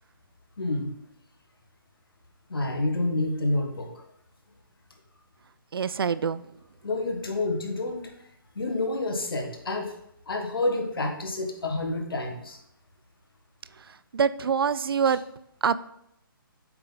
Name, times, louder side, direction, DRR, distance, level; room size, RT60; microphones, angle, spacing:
voice 1, 0.6-0.9 2.5-3.9 6.8-8.1 8.5-9.9 10.3-12.6, left 2 dB, 80° left, 3 dB, 1.4 m, -28 dB
voice 2, 5.7-6.4 14.1-15.2 15.6-15.8, right 6 dB, 80° right, 17 dB, 0.4 m, -25 dB
7.7 x 3.8 x 4.0 m, 0.76 s
hypercardioid pair, 150°, 12 cm